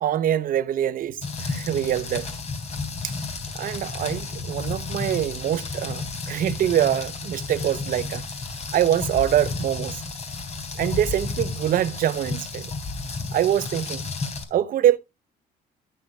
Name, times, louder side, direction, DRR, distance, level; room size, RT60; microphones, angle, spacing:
voice 1, 0.0-2.3 3.0-3.1 3.5-8.2 8.7-10.0 10.8-12.7 13.3-14.0 14.5-15.0, right 11 dB, 55° right, 0.8 m, -24 dB
Rain, 1.2-14.4, left 4 dB, 40° left, 3.7 m, -32 dB
16.5 x 7.6 x 2.4 m
cardioid pair, 110°, 17 cm